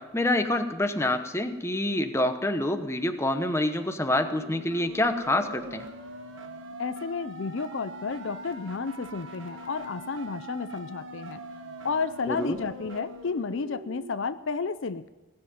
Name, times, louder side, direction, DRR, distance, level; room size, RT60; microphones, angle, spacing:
voice 1, 0.0-5.8 12.3-12.5, left 1 dB, 10° left, 7 dB, 0.9 m, -27 dB
sound 1, 4.1-14.1, right 1 dB, 65° right, 1.5 m, -42 dB
voice 2, 6.8-11.4 11.8-15.1, left 4 dB, 60° left, 13 dB, 0.5 m, -32 dB
18.5 x 7.7 x 9.3 m, 1.2 s
head